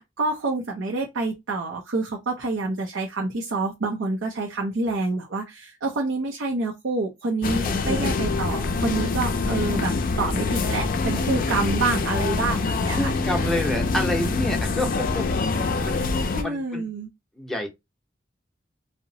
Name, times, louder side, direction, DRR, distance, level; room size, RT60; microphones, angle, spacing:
voice 1, 0.0-13.1 16.3-17.1, right 3 dB, 85° right, 0.6 m, -27 dB
sound 1, 7.4-16.4, left 3 dB, 45° left, 0.4 m, -25 dB
voice 2, 7.6-8.2 11.2-11.3 12.9-15.5 15.8-16.8 17.4-17.7, left 1 dB, ahead, 0.6 m, -29 dB
2.8 x 2.0 x 2.6 m
head